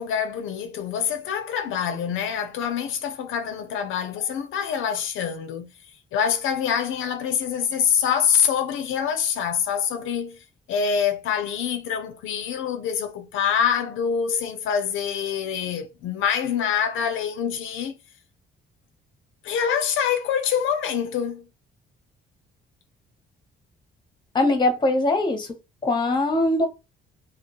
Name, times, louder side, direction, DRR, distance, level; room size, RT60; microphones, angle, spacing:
voice 1, 0.0-5.7 6.1-18.0 19.4-21.5, left 8 dB, 85° left, 0.5 m, -25 dB
voice 2, 24.3-25.5 25.8-26.7, left 2 dB, 20° left, 0.8 m, -21 dB
2.2 x 2.2 x 2.9 m
cardioid pair, 90°, 20 cm